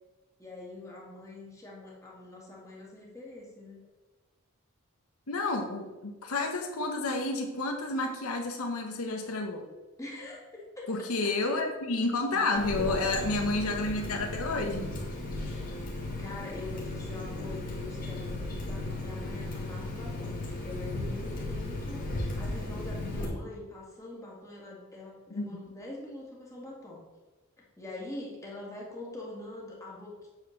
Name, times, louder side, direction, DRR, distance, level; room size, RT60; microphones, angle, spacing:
voice 1, 0.4-3.9 10.0-10.9 12.3-13.8 15.3-27.0 27.6-30.3, left 2 dB, 15° left, -4 dB, 2.1 m, -44 dB
voice 2, 5.3-9.6 10.9-15.0 25.3-25.5, left 2 dB, 75° left, 2 dB, 1.1 m, -30 dB
Water tap faucet, 12.6-23.3, left 2 dB, 40° left, 2.3 m, -36 dB
8.7 x 4.4 x 6.5 m, 1.2 s
head